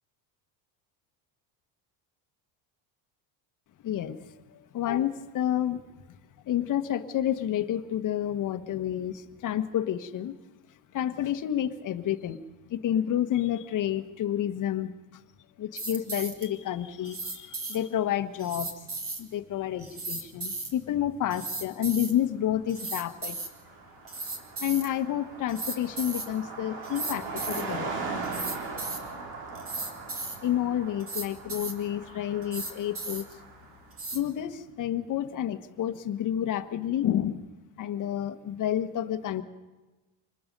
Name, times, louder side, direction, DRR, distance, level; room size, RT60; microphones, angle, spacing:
voice 1, 3.8-5.8 6.4-10.4 10.9-12.4 12.7-15.2 15.6-18.9 19.2-23.4 24.6-28.2 30.4-33.3 34.1-37.4 37.8-39.4, left 11 dB, 45° left, 8 dB, 1.3 m, -30 dB
sound 1, 15.8-16.5 17.0-17.8 18.4-19.2 19.8-20.7 21.3-22.1 22.7-23.5 24.1-24.9 25.5-26.3 26.8-27.6 28.2-29.0 29.5-30.4 31.0-31.7 32.4-33.3 33.9-34.2, right 3 dB, 30° right, 2.6 m, -35 dB
Car passing by, 22.7-22.8 23.0-34.0, right 4 dB, 85° right, 4.7 m, -40 dB
26.0 x 20.5 x 5.4 m, 1.2 s
cardioid pair, 130°, 44 cm